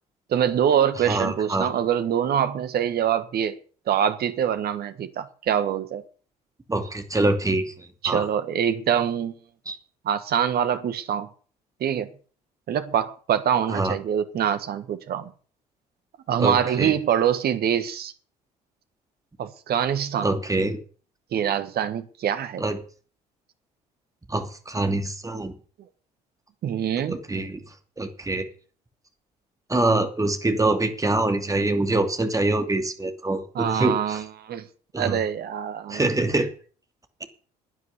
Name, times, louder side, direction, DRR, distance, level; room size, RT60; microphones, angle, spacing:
voice 1, 0.3-3.6 3.9-6.0 8.0-9.3 10.0-11.3 11.8-12.1 12.7-15.3 16.3-18.1 19.4-20.3 21.3-22.6 26.6-27.2 33.5-34.6 35.0-36.0, right 9 dB, 50° right, 1.4 m, -24 dB
voice 2, 1.1-1.7 6.7-8.3 9.7-9.8 13.7-13.9 16.4-16.9 20.2-20.8 22.6-22.8 24.3-25.5 27.1-27.6 28.0-28.4 29.7-34.2 34.9-35.2 35.9-36.5, right 2 dB, 15° right, 2.7 m, -25 dB
11.5 x 9.7 x 6.8 m
figure-of-eight pair, 50°, 21 cm